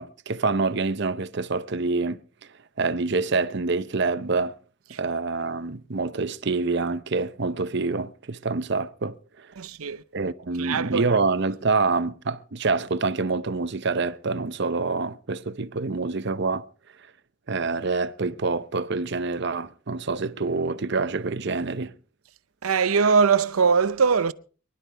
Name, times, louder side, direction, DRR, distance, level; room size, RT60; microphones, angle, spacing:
voice 1, 0.0-2.2 2.8-4.6 5.0-9.5 10.1-16.6 17.5-21.9, right 3 dB, 55° right, 0.7 m, -26 dB
voice 2, 9.6-10.0 10.6-11.1 22.6-24.3, right 5 dB, 85° right, 0.7 m, -21 dB
24.0 x 12.0 x 3.4 m
head